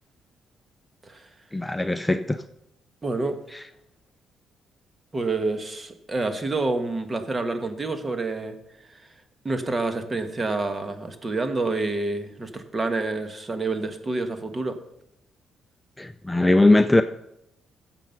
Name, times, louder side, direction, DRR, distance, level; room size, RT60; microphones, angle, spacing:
voice 1, 1.5-2.4 16.0-17.0, left 2 dB, 10° left, 9 dB, 0.5 m, -19 dB
voice 2, 3.0-3.4 5.1-8.6 9.0-9.1 9.4-14.8, right 3 dB, 25° right, 8 dB, 1.5 m, -28 dB
14.5 x 7.6 x 5.4 m, 0.83 s
cardioid pair, 90°, 0 cm